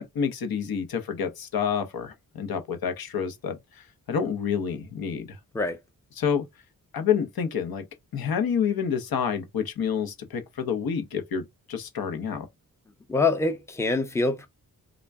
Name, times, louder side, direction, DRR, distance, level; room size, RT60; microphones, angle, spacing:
voice 1, 0.0-5.4 6.2-6.4 6.9-7.8 8.1-12.5, left 7 dB, 85° left, 0.9 m, -28 dB
voice 2, 13.1-14.5, left 3 dB, 10° left, 0.4 m, -25 dB
3.7 x 2.2 x 3.4 m
wide cardioid pair, 165°, 35 cm